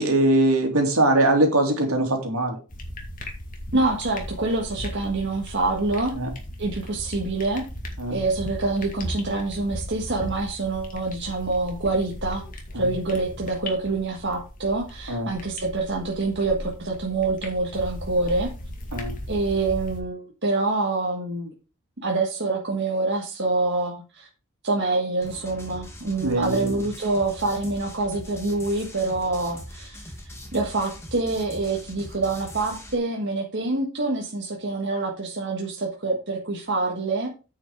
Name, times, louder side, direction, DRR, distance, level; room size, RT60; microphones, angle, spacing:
voice 1, 0.0-2.6 6.1-6.3 8.0-8.2 12.7-12.9 15.1-15.3 18.9-19.2 26.2-26.8, right 1 dB, 75° right, 3 dB, 2.8 m, -22 dB
sound 1, 2.7-20.0, equal, 40° left, 2.3 m, -37 dB
voice 2, 3.7-6.1 6.6-7.6 8.1-12.4 12.7-18.5 19.3-21.5 22.0-24.3 24.6-30.0 30.5-37.3, right 3 dB, 50° right, 0 dB, 1.6 m, -26 dB
sound 2, 25.2-33.0, equal, 10° left, 2.0 m, -41 dB
9.2 x 5.7 x 4.9 m, 0.33 s
head